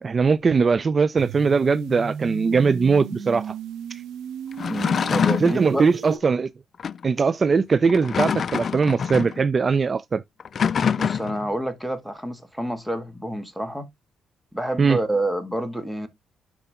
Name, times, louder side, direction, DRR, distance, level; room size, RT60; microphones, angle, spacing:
voice 1, 0.0-3.5 3.9-4.0 5.4-6.5 7.0-10.2 14.8-15.0, right 5 dB, 35° right, 0.5 m, -20 dB
sound 1, 1.2-6.2, right 8 dB, 85° right, 1.1 m, -36 dB
sound 2, 4.5-5.6 6.8-7.0 7.8-9.4 10.4-11.5, left 7 dB, 50° left, 0.4 m, -25 dB
voice 2, 4.7-5.8 11.0-13.9 14.5-16.1, right 1 dB, 5° right, 2.1 m, -28 dB
12.0 x 4.8 x 3.6 m
cardioid pair, 90°, 0 cm